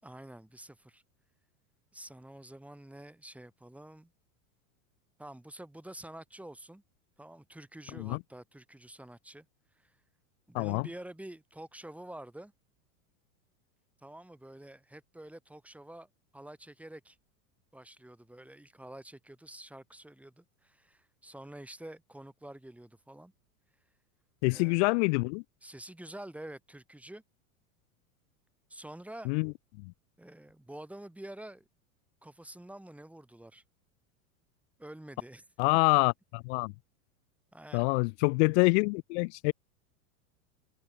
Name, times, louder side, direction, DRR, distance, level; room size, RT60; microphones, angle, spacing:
voice 1, 0.0-1.0 1.9-4.1 5.2-6.8 7.2-9.5 9.8-9.9 10.5-12.5 14.0-17.2 17.7-23.3 24.5-24.9 25.6-27.2 28.7-29.3 30.2-31.7 32.2-33.6 34.8-35.4 37.5-37.9, right 1 dB, 5° right, 7.0 m, -48 dB
voice 2, 10.5-10.9 24.4-25.4 29.2-29.9 35.6-36.7 37.7-39.5, left 32 dB, 50° left, 0.5 m, -26 dB
hypercardioid pair, 110°, 43 cm